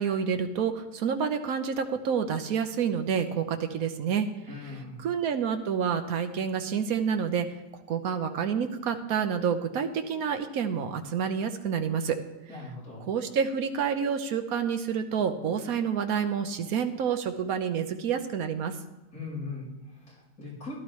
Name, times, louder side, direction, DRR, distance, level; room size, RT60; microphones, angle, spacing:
voice 1, 0.0-4.3 5.0-7.5 7.9-12.2 13.1-18.7, right 7 dB, 70° right, 7 dB, 1.3 m, -28 dB
voice 2, 4.5-5.0 12.5-13.0 19.1-20.7, left 3 dB, 75° left, -6 dB, 5.5 m, -40 dB
15.5 x 12.0 x 3.2 m, 1.1 s
omnidirectional pair, 1.6 m